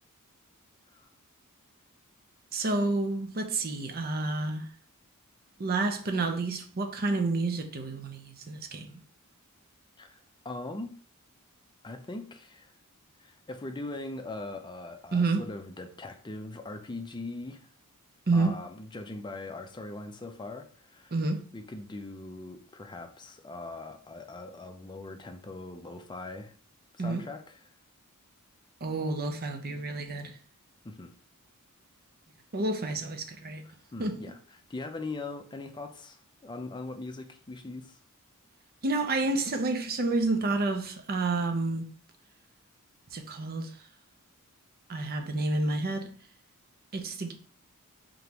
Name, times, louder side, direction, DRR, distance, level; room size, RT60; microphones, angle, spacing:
voice 1, 2.5-4.7 5.6-9.0 15.1-15.4 18.3-18.6 21.1-21.4 27.0-27.2 28.8-30.4 32.5-33.6 34.0-34.2 38.8-41.9 43.1-43.7 44.9-46.1 46.9-47.3, right 3 dB, 45° right, 0.7 m, -29 dB
voice 2, 10.0-11.0 11.8-12.7 13.2-17.7 18.3-21.1 21.5-26.5 26.9-27.6 30.8-31.1 33.9-34.4 34.7-38.0, left 2 dB, 20° left, 0.5 m, -41 dB
3.8 x 3.6 x 2.9 m
head